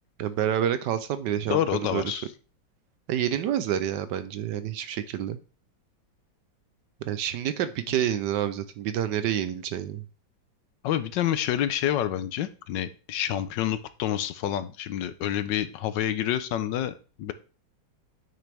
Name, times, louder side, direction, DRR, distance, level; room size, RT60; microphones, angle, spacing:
voice 1, 0.2-2.2 3.1-5.4 7.0-10.0, right 10 dB, 70° right, 12 dB, 1.2 m, -28 dB
voice 2, 1.5-2.3 10.8-17.3, left 11 dB, 75° left, 13 dB, 1.3 m, -28 dB
9.2 x 6.4 x 3.4 m, 0.36 s
omnidirectional pair, 2.0 m